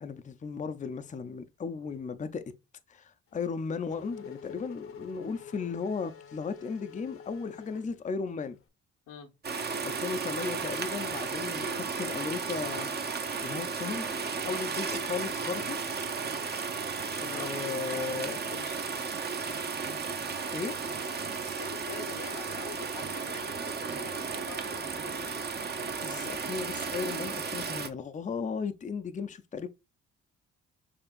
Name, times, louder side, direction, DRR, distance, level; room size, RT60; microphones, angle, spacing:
voice 1, 0.0-2.4 2.9-8.6 9.8-14.1 14.4-15.8 17.2-18.4 20.5-20.8 26.0-29.7, left 5 dB, 25° left, 0.5 m, -36 dB
Race car auto racing / Accelerating revving vroom, 3.3-8.6, left 7 dB, 45° left, 0.9 m, -47 dB
sound 1, 9.4-27.9, right 5 dB, 35° right, 0.8 m, -34 dB
voice 2, 17.3-18.8 21.6-25.4, left 6 dB, 85° left, 1.3 m, -46 dB
6.9 x 2.9 x 2.5 m
cardioid pair, 90°, 30 cm